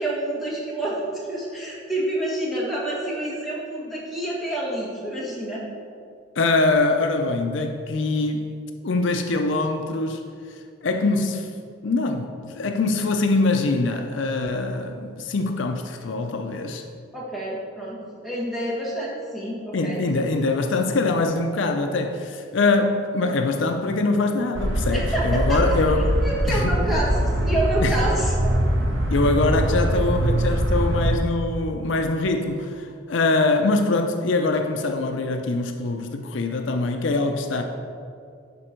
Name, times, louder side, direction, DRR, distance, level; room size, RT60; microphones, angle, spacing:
voice 1, 0.0-5.6 17.1-20.1 24.9-25.8 26.2-27.1 27.4-28.5, right 1 dB, ahead, -7 dB, 1.7 m, -28 dB
voice 2, 6.4-8.5 8.8-10.2 10.5-11.5 11.8-16.8 19.7-26.1 26.5-27.0 27.8-28.0 29.1-37.6, left 3 dB, 70° left, 4 dB, 0.5 m, -23 dB
sound 1, 24.5-31.2, right 1 dB, 75° right, 0.9 m, -23 dB
11.5 x 4.5 x 4.4 m, 2.4 s
head